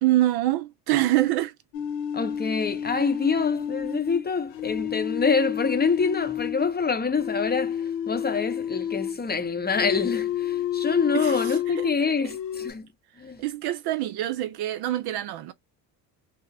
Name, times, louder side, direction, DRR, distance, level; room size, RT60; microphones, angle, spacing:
voice 1, 0.0-1.5 11.1-11.9 12.2-12.3 13.4-15.5, right 15 dB, 55° right, 0.5 m, -25 dB
sound 1, 1.7-6.8 7.2-9.2 9.7-12.0 12.2-12.7, left 10 dB, 90° left, 0.6 m, -30 dB
voice 2, 2.1-12.8 13.2-13.4, left 5 dB, 20° left, 0.6 m, -26 dB
2.9 x 2.0 x 2.6 m
supercardioid pair, 75°, 48 cm